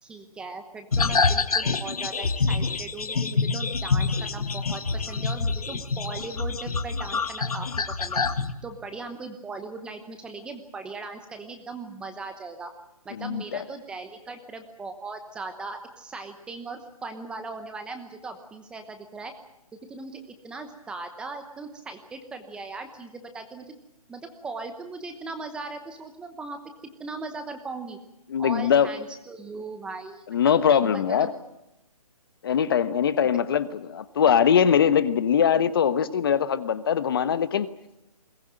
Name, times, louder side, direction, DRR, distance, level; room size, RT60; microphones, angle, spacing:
voice 1, 0.0-8.2 8.6-12.7 13.0-19.3 19.9-23.7 24.1-26.6 27.0-28.0 28.4-30.2 30.8-31.3, right 3 dB, 5° right, 1.0 m, -39 dB
sound 1, 0.9-8.5, left 4 dB, 75° left, 1.9 m, -26 dB
voice 2, 28.3-28.9 30.3-31.3 32.4-37.7, left 8 dB, 40° left, 1.1 m, -22 dB
22.0 x 19.0 x 9.0 m
hypercardioid pair, 160°, 19 cm